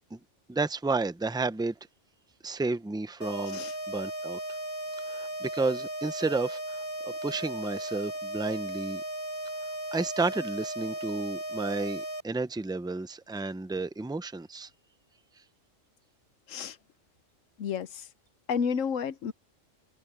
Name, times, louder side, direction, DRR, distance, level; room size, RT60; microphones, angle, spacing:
voice 1, 0.5-1.7 2.4-3.6 3.9-4.4 5.1-6.8 7.0-9.0 9.9-14.7, right 3 dB, 5° right, 0.4 m, -31 dB
sound 1, 3.2-12.2, right 1 dB, 20° left, 3.0 m, -36 dB
voice 2, 17.6-18.1 18.5-19.3, left 6 dB, 85° left, 1.2 m, -31 dB
open air
omnidirectional pair, 1.3 m